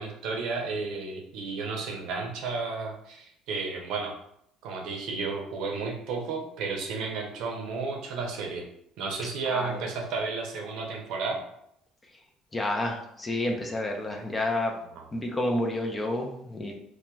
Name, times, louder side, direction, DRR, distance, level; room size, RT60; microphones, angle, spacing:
voice 1, 0.0-4.1 4.6-8.6 9.0-11.4, right 4 dB, 70° right, 1 dB, 0.6 m, -32 dB
voice 2, 9.5-9.9 12.5-14.8 15.1-16.7, left 1 dB, 20° left, 2 dB, 0.4 m, -29 dB
2.8 x 2.1 x 2.2 m, 0.73 s
cardioid pair, 105°, 0 cm